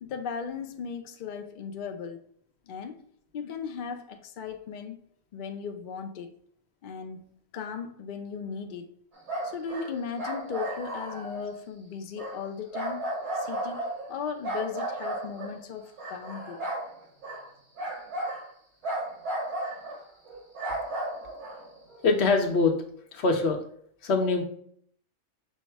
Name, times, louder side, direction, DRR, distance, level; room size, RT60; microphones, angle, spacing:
voice 1, 0.0-2.2 2.7-3.0 3.3-5.0 5.3-6.3 6.8-8.9 9.4-13.1 13.3-13.8 14.1-16.6, left 6 dB, 75° left, 0.4 m, -37 dB
sound 1, 9.2-11.4 12.2-12.4 12.7-14.1 14.4-15.5 16.0-16.9 17.2-17.5 17.8-18.5 18.8-20.0 20.3-22.0, right 1 dB, 55° right, 2.0 m, -34 dB
voice 2, 22.0-22.7 23.1-23.6 24.0-24.4, left 4 dB, 55° left, 1.0 m, -23 dB
5.5 x 2.1 x 4.5 m
omnidirectional pair, 1.4 m